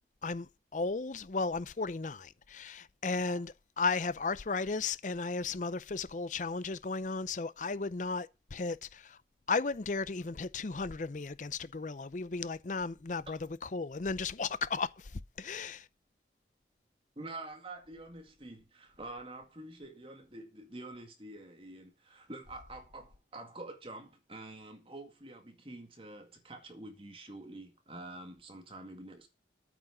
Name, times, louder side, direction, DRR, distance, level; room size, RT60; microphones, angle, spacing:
voice 1, 0.2-9.2 9.5-15.9, left 4 dB, 45° left, 0.5 m, -35 dB
voice 2, 17.2-29.3, right 2 dB, 30° right, 2.1 m, -47 dB
8.9 x 6.1 x 7.9 m
head